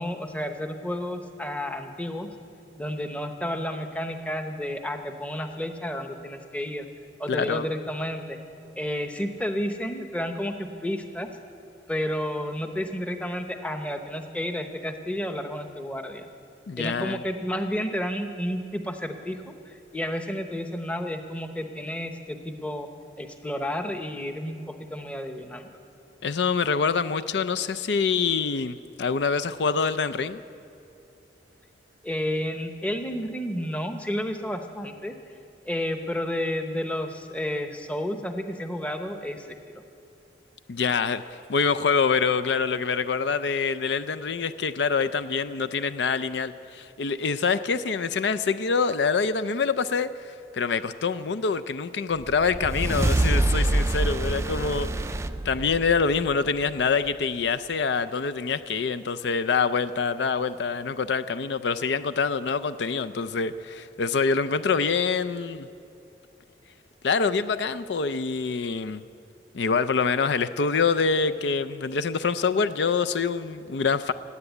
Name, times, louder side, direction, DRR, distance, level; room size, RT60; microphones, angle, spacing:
voice 1, 0.0-2.3 2.8-6.9 7.2-8.4 8.8-11.3 11.9-16.3 16.8-22.9 23.2-24.6 24.9-25.7 32.0-35.1 35.7-39.8, equal, 5° left, 6 dB, 0.9 m, -31 dB
voice 2, 7.3-7.7 16.7-17.2 26.2-30.4 40.7-50.1 50.5-55.2 55.4-65.7 67.0-69.0 69.5-74.1, left 5 dB, 70° left, 12 dB, 0.5 m, -25 dB
sound 1, 52.2-56.8, right 2 dB, 15° right, 0.3 m, -26 dB
18.0 x 9.8 x 8.2 m, 2.6 s
head